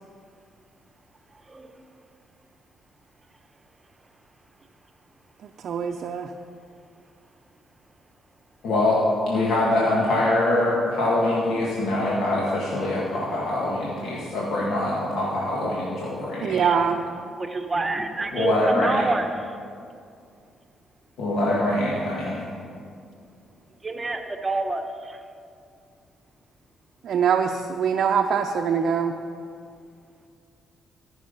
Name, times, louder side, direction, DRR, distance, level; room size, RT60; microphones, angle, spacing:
voice 1, 1.3-1.8 16.5-16.8 17.4-19.6 23.8-25.2, right 2 dB, 25° right, 6 dB, 0.9 m, -28 dB
voice 2, 5.6-6.3 16.4-17.0 27.0-29.1, right 7 dB, 60° right, 3 dB, 0.5 m, -23 dB
voice 3, 8.6-9.0 9.3-16.6 18.3-19.0 21.2-22.4, left 1 dB, 75° left, -5 dB, 1.9 m, -24 dB
13.5 x 6.2 x 5.4 m, 2.3 s
cardioid pair, 90°, 0 cm